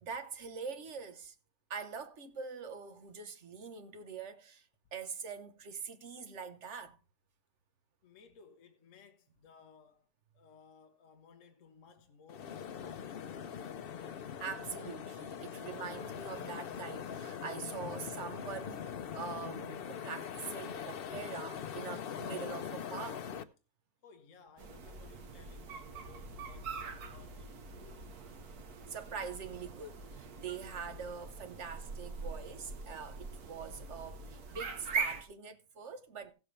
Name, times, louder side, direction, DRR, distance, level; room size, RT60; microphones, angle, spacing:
voice 1, 0.0-1.3 1.7-4.6 4.9-7.0 14.4-23.3 28.9-36.3, right 6 dB, 50° right, 1.2 m, -44 dB
voice 2, 8.0-10.1 10.3-13.9 24.0-27.5 27.8-28.1 28.3-28.4 31.5-31.6, left 5 dB, 50° left, 1.5 m, -60 dB
sea beach noise light wind, 12.3-23.4, left 8 dB, 85° left, 0.5 m, -42 dB
sound 1, 24.6-35.2, right 4 dB, 65° right, 1.5 m, -42 dB
16.0 x 7.7 x 3.2 m
omnidirectional pair, 1.8 m